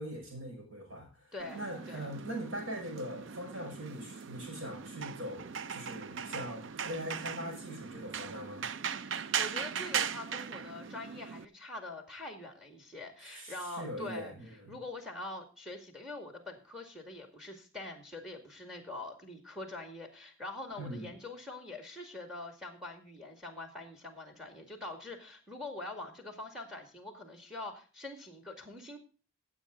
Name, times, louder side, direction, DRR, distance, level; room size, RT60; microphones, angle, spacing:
voice 1, 0.0-8.7 13.2-14.8 20.8-21.1, equal, 80° right, 1 dB, 6.1 m, -42 dB
voice 2, 1.3-1.6 1.9-2.1 9.1-14.3 14.7-29.0, left 2 dB, ahead, 5 dB, 2.0 m, -44 dB
sound 1, 1.4-11.4, right 7 dB, 60° right, 0.5 m, -39 dB
16.0 x 7.9 x 3.8 m, 0.35 s
head